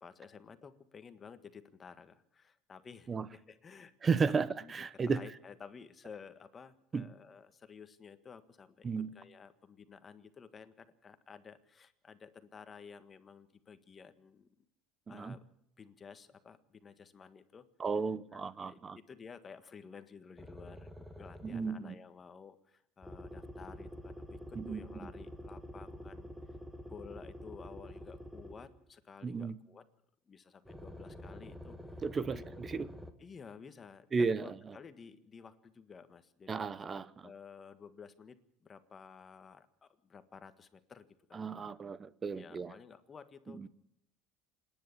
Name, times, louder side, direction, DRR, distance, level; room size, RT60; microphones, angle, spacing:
voice 1, 0.0-3.9 4.3-4.4 4.6-8.9 9.1-14.5 15.1-15.4 15.8-17.7 18.3-26.3 26.9-29.8 30.3-32.0 32.3-32.5 33.2-36.6 37.2-38.4 38.6-41.4 42.4-43.7, left 6 dB, 30° left, 11 dB, 1.6 m, -53 dB
voice 2, 4.0-5.2 6.9-7.1 8.8-9.1 15.1-15.4 17.8-19.0 21.4-22.0 24.5-25.1 29.2-29.6 32.0-32.9 34.1-34.7 36.5-37.3 41.3-42.7 43.5-43.7, right 5 dB, 25° right, 18 dB, 0.9 m, -34 dB
sound 1, 20.4-21.8 23.0-28.8 30.6-33.1, equal, 5° right, 1.9 m, -48 dB
26.5 x 10.5 x 10.0 m, 0.73 s
cardioid pair, 120°, 0 cm